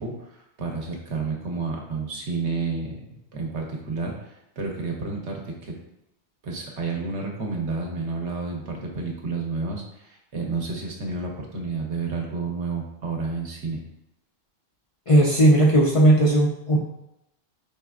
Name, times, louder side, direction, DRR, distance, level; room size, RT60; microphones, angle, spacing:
voice 1, 0.0-2.9 3.3-5.7 6.4-13.8, right 4 dB, 80° right, 0 dB, 1.1 m, -30 dB
voice 2, 15.1-16.8, right 1 dB, 45° left, -4 dB, 0.4 m, -17 dB
5.1 x 3.3 x 2.4 m, 0.84 s
omnidirectional pair, 1.2 m